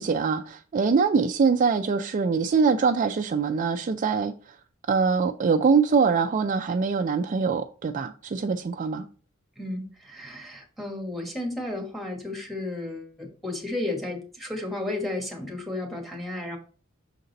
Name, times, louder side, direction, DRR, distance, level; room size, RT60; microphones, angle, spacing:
voice 1, 0.0-4.6 4.9-9.1, right 5 dB, 40° right, 7 dB, 0.3 m, -23 dB
voice 2, 9.6-16.6, left 2 dB, ahead, 1 dB, 1.4 m, -33 dB
6.6 x 3.9 x 4.0 m, 0.40 s
head